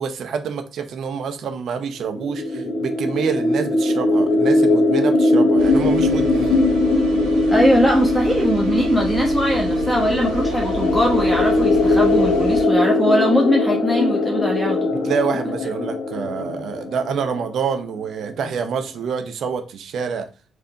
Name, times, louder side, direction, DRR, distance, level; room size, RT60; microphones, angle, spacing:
voice 1, 0.0-6.6 14.9-20.3, right 6 dB, 55° right, 0.6 m, -27 dB
sound 1, 2.1-17.8, left 2 dB, 55° left, 0.9 m, -20 dB
sound 2, 5.6-12.7, right 3 dB, 80° right, 0.9 m, -33 dB
voice 2, 7.5-14.9, equal, ahead, 1.1 m, -21 dB
4.2 x 2.7 x 3.7 m
figure-of-eight pair, 40°, 0 cm